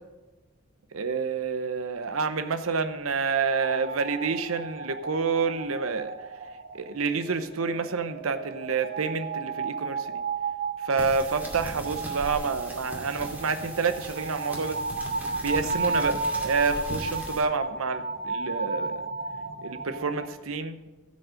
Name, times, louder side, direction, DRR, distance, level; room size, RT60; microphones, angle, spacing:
voice 1, 0.9-6.1 6.7-10.2 10.8-14.8 15.4-19.0 19.6-20.9, right 4 dB, 80° right, 10 dB, 0.8 m, -28 dB
sound 1, 3.5-20.3, right 4 dB, 45° right, 0.7 m, -33 dB
sound 2, 11.0-17.4, right 1 dB, 10° right, 2.4 m, -39 dB
15.5 x 5.4 x 6.5 m, 1.1 s
head